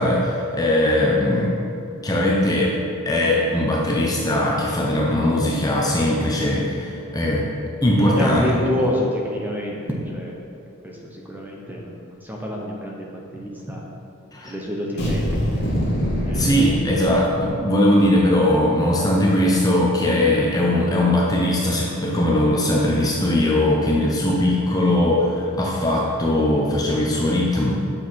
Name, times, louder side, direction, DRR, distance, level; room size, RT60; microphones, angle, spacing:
voice 1, 0.0-1.6 2.0-2.8 3.1-7.5 7.8-8.4 14.3-14.5 16.3-27.8, left 1 dB, 20° left, -3 dB, 0.8 m, -20 dB
voice 2, 7.9-10.4 10.8-13.8 14.4-15.7 16.2-16.6, equal, 10° right, -2 dB, 1.1 m, -28 dB
sound 1, 15.0-17.7, equal, 50° left, 2.0 m, -24 dB
8.7 x 6.5 x 4.7 m, 2.5 s
head